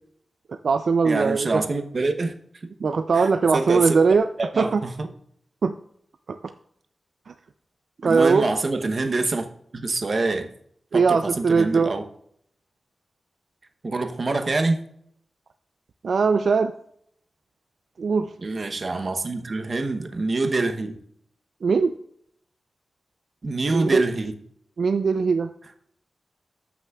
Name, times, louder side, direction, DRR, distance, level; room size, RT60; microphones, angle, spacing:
voice 1, 0.5-1.6 2.8-4.3 4.6-4.8 5.6-5.7 6.3-6.5 7.3-7.4 8.0-8.4 10.9-11.9 16.0-16.7 18.0-18.3 21.6-21.9 23.7-24.0 24.8-25.5, right 5 dB, 70° right, 8 dB, 0.4 m, -20 dB
voice 2, 1.0-2.3 3.1-4.0 4.4-5.1 8.0-9.5 9.7-10.5 10.9-12.0 13.8-14.8 18.4-21.0 23.4-24.3, right 3 dB, 45° right, 6 dB, 0.8 m, -25 dB
13.5 x 5.9 x 2.3 m, 0.67 s
wide cardioid pair, 145°, 0 cm